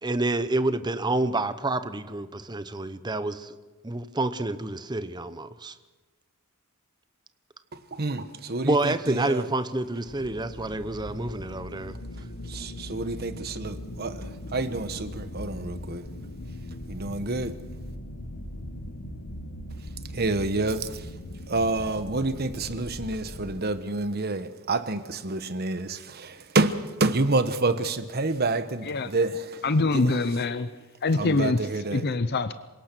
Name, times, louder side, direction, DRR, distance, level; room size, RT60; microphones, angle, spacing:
voice 1, 0.0-3.6 3.8-5.7 8.6-12.0, right 2 dB, 20° right, 0.8 m, -28 dB
voice 2, 7.9-9.4 12.2-16.1 16.9-17.5 20.1-21.1 21.5-29.6 29.9-30.2 31.2-32.0, right 2 dB, 45° right, 1.2 m, -28 dB
sound 1, 10.1-23.6, left 1 dB, 80° left, 1.6 m, -39 dB
voice 3, 29.6-30.7 31.0-31.6 31.9-32.5, left 3 dB, 50° left, 0.7 m, -24 dB
27.0 x 17.5 x 6.1 m
head